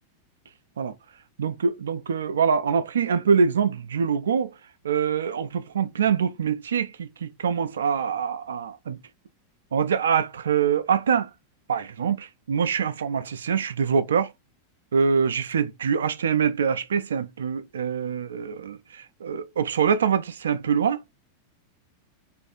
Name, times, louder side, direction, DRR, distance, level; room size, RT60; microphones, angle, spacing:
voice 1, 1.4-4.5 4.8-9.0 9.7-11.3 11.7-14.3 14.9-21.1, right 6 dB, 80° right, 0.4 m, -24 dB
2.6 x 2.5 x 2.4 m
hypercardioid pair, 95°, 0 cm